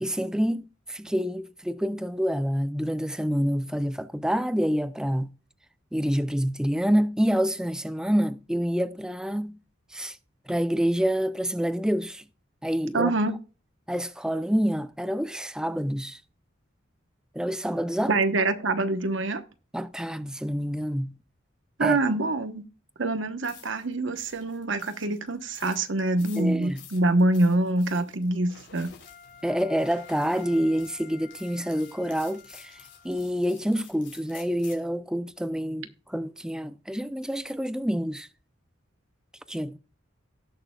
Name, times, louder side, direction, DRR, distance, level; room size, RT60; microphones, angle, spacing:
voice 1, 0.0-5.3 5.9-9.6 9.9-10.2 10.5-12.2 12.6-13.1 13.9-16.2 17.3-18.1 19.7-21.1 21.8-22.0 26.3-26.8 29.4-32.8 33.0-38.3 39.5-39.8, equal, 5° right, 0.5 m, -27 dB
voice 2, 12.9-13.4 18.1-19.4 21.8-22.6 23.0-28.9, right 2 dB, 70° right, 1.1 m, -25 dB
sound 1, 23.4-34.9, left 8 dB, 60° left, 3.6 m, -52 dB
Wind instrument woodwind instrument, 29.0-33.3, left 8 dB, 40° left, 2.5 m, -50 dB
18.0 x 6.7 x 2.3 m
head